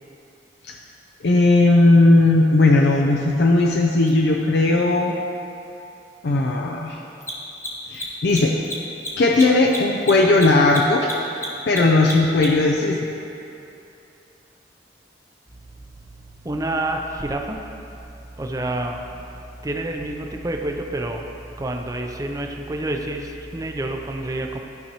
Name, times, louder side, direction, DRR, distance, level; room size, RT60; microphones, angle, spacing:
voice 1, 1.2-5.2 6.2-7.0 7.9-8.6 9.2-11.1 11.7-13.0, left 2 dB, 65° left, 0 dB, 0.5 m, -17 dB
Mechanisms, 4.1-4.2 7.1-12.7, equal, 15° left, 1.0 m, -32 dB
voice 2, 16.4-17.6 18.4-19.0 19.6-21.2 21.6-24.6, right 1 dB, 20° right, 2 dB, 0.5 m, -28 dB
13.0 x 5.3 x 3.0 m, 2.7 s
head